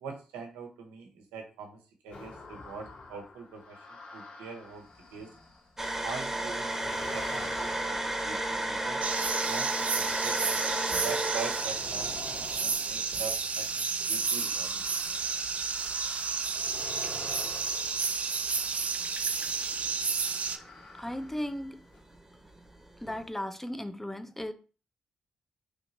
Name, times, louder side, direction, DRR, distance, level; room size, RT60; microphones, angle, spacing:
voice 1, 0.0-4.9 5.1-5.3 6.0-9.0 9.5-10.4 10.6-14.8, right 5 dB, 90° right, 0.8 m, -43 dB
sound 1, 2.1-5.8 6.4-19.2 20.0-21.6 21.9-22.0, left 3 dB, 55° left, 1.7 m, -47 dB
sound 2, 5.8-13.4 13.9-14.0 15.5-16.0 17.1-21.2 21.5-21.8 22.1-23.3, right 1 dB, 15° right, 1.0 m, -34 dB
sound 3, 9.0-20.6, right 5 dB, 55° right, 0.5 m, -31 dB
voice 2, 21.0-21.8 23.0-24.5, left 1 dB, 10° left, 0.6 m, -36 dB
3.3 x 2.8 x 4.2 m
hypercardioid pair, 45°, 3 cm